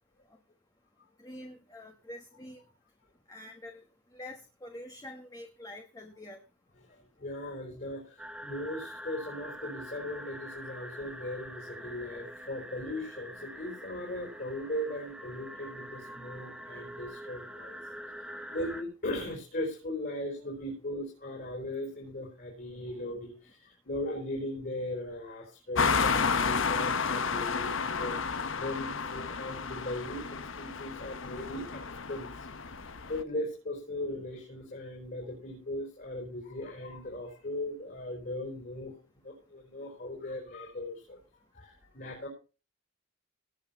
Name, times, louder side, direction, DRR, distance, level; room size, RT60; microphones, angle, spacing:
voice 1, 1.2-2.6 3.3-3.8 4.1-6.4 11.8-11.9, left 1 dB, 15° left, 4 dB, 1.3 m, -46 dB
voice 2, 6.9-17.8 18.3-28.2 28.6-32.3 32.9-38.9 39.2-41.2 41.5-42.3, left 1 dB, 45° left, -2 dB, 4.6 m, -38 dB
sound 1, 8.2-18.8, equal, 5° right, 1.0 m, -45 dB
sound 2, 25.7-33.2, left 5 dB, 60° left, 1.0 m, -31 dB
18.0 x 6.2 x 5.8 m, 0.33 s
head